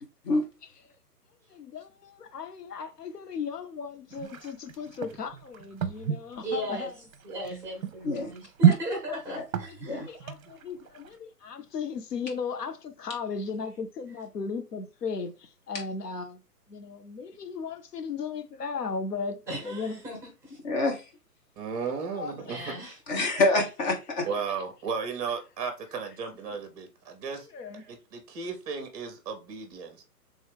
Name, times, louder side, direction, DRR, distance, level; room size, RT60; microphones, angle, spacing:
voice 1, 1.5-6.9 9.7-16.4 16.7-20.0 22.1-22.3 22.6-22.7 27.5-27.8, left 5 dB, 80° left, 0.9 m, -36 dB
sound 1, 4.1-11.1, right 8 dB, 60° right, 0.7 m, -29 dB
voice 2, 6.4-6.9 7.2-10.1 19.5-20.6 22.5-23.0, equal, 5° right, 1.2 m, -36 dB
voice 3, 20.6-21.0 23.1-24.3, left 2 dB, 30° left, 1.0 m, -26 dB
voice 4, 21.6-22.8 24.2-27.5 27.7-30.0, right 5 dB, 25° right, 0.9 m, -35 dB
3.4 x 3.1 x 3.4 m
hypercardioid pair, 140°, 47 cm